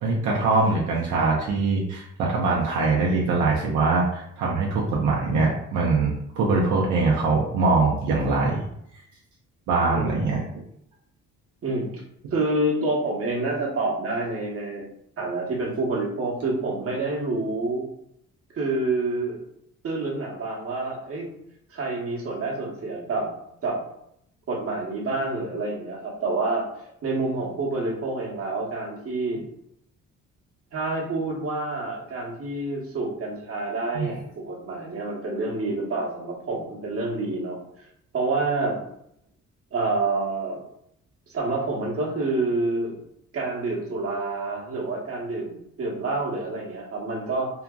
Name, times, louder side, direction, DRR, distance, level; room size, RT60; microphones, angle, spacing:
voice 1, 0.0-8.6 9.7-10.4 33.9-34.1, right 3 dB, 80° right, -3 dB, 0.6 m, -23 dB
voice 2, 12.3-14.8 15.2-17.8 18.5-19.4 19.8-21.3 21.7-23.3 23.6-23.8 24.5-26.7 27.0-29.4 30.7-37.6 38.1-38.8 39.7-40.6 41.3-43.0 43.3-47.5, right 2 dB, 50° right, -3 dB, 1.0 m, -28 dB
2.8 x 2.5 x 2.3 m, 0.73 s
cardioid pair, 90°, 30 cm